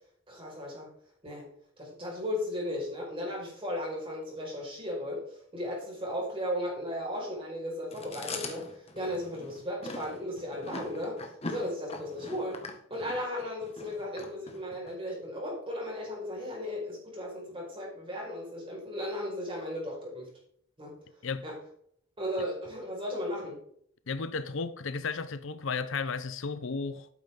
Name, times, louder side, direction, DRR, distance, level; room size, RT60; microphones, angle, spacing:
voice 1, 0.3-0.9 1.2-1.5 1.8-12.6 12.9-20.3 20.8-20.9 21.4-21.6 22.2-23.6, left 1 dB, 25° right, 5.0 m, -36 dB
Chewing mastication, 7.9-14.9, left 3 dB, 30° left, 1.6 m, -42 dB
voice 2, 24.1-27.1, left 4 dB, 60° left, 0.7 m, -34 dB
12.5 x 9.3 x 3.7 m
head